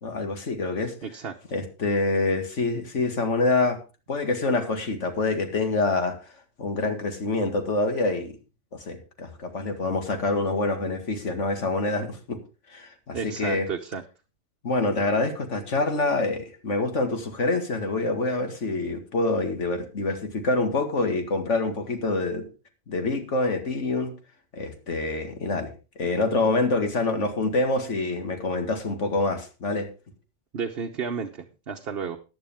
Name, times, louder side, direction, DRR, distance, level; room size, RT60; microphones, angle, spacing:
voice 1, 0.0-0.9 1.5-3.8 4.1-6.2 6.6-8.4 8.8-12.4 12.7-13.7 14.6-22.5 22.9-24.1 24.5-25.7 26.0-29.9, left 3 dB, 75° left, 6 dB, 2.3 m, -26 dB
voice 2, 1.0-1.3 13.1-14.0 30.5-32.2, right 6 dB, 55° right, 3 dB, 1.1 m, -32 dB
14.5 x 10.5 x 3.6 m, 0.31 s
omnidirectional pair, 1.2 m